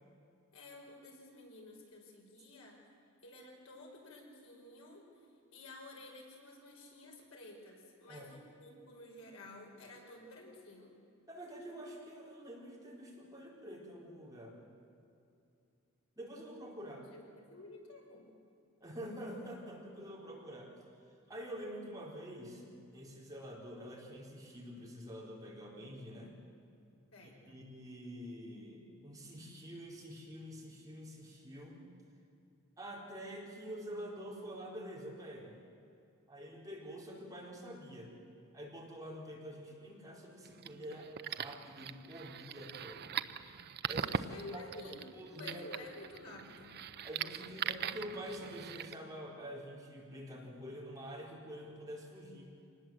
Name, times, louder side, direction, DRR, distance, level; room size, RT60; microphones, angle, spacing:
voice 1, 0.5-2.8 3.2-10.9 17.1-18.3 27.1-27.6 44.3-46.8, left 2 dB, 75° left, 0 dB, 5.4 m, -52 dB
voice 2, 11.3-14.6 16.2-17.0 18.8-20.8 21.3-26.4 27.5-31.9 32.8-35.6 36.3-38.1 38.5-43.2 43.8-45.6 47.0-52.5, equal, 15° right, -3 dB, 4.3 m, -47 dB
sound 1, 40.4-48.9, right 8 dB, 50° right, 0.6 m, -41 dB
25.5 x 19.5 x 7.8 m, 2.5 s
head